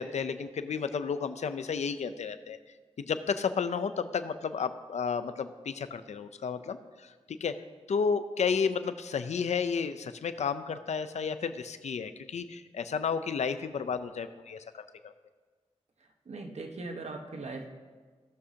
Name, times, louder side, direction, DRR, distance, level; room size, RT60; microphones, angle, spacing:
voice 1, 0.0-2.6 3.0-7.5 7.9-15.1, left 6 dB, 85° left, 10 dB, 0.5 m, -32 dB
voice 2, 16.3-17.7, right 3 dB, 75° right, 3 dB, 1.2 m, -39 dB
17.0 x 6.3 x 2.8 m, 1.5 s
cardioid pair, 55°, 11 cm